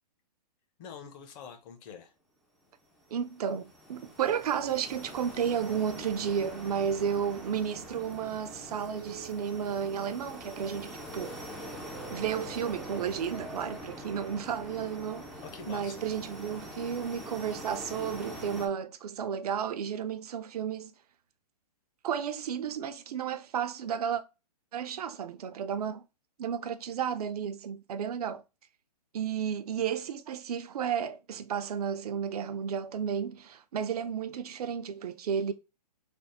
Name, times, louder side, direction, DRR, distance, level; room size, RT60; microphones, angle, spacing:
voice 1, 0.8-2.1 15.4-16.0 18.3-18.5, left 7 dB, 30° left, 0.7 m, -46 dB
sound 1, 3.0-18.7, equal, ahead, 0.4 m, -44 dB
voice 2, 3.1-11.5 12.1-15.3 15.7-20.9 22.0-24.2 24.7-26.0 26.4-28.4 29.1-35.5, right 8 dB, 65° right, 0.5 m, -32 dB
sound 2, 7.1-13.8, right 7 dB, 80° right, 0.9 m, -50 dB
3.4 x 2.0 x 4.1 m
hypercardioid pair, 145°, 21 cm